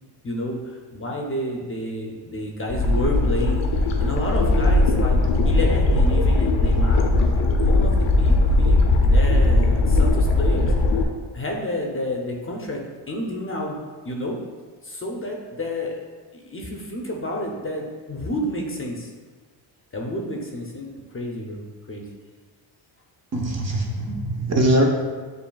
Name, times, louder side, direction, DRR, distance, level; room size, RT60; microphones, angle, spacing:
voice 1, 0.2-7.3 7.6-8.9 9.1-10.7 11.3-13.8 14.0-14.4 14.8-15.9 16.3-19.1 19.9-22.1, left 1 dB, 30° left, 0 dB, 0.6 m, -30 dB
sound 1, 2.7-11.0, left 2 dB, 75° left, 0.6 m, -18 dB
voice 2, 23.3-24.8, right 1 dB, 35° right, 0 dB, 0.7 m, -22 dB
7.1 x 2.6 x 2.3 m, 1.4 s
cardioid pair, 80°, 46 cm